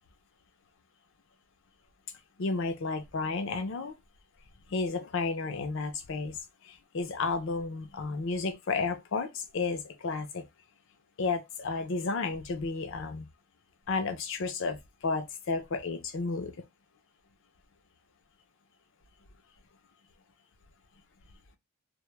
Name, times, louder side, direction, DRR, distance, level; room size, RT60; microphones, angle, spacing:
voice 1, 2.4-3.9 4.7-6.4 6.6-10.4 11.2-13.3 13.9-16.6, left 4 dB, 55° left, 0.4 m, -32 dB
2.1 x 2.0 x 3.1 m
head